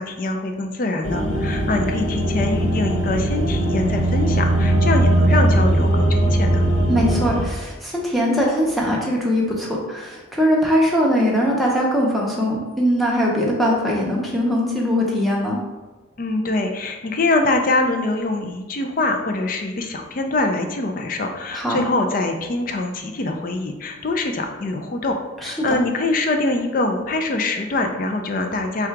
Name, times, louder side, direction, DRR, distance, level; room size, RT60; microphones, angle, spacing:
voice 1, 0.0-6.6 16.2-28.9, left 2 dB, 45° left, 5 dB, 0.4 m, -24 dB
sound 1, 1.0-7.4, right 1 dB, 80° left, 0.7 m, -19 dB
voice 2, 6.9-15.6 21.5-21.8 25.4-25.8, equal, ahead, -4 dB, 0.6 m, -21 dB
3.7 x 2.3 x 4.5 m, 1.2 s
head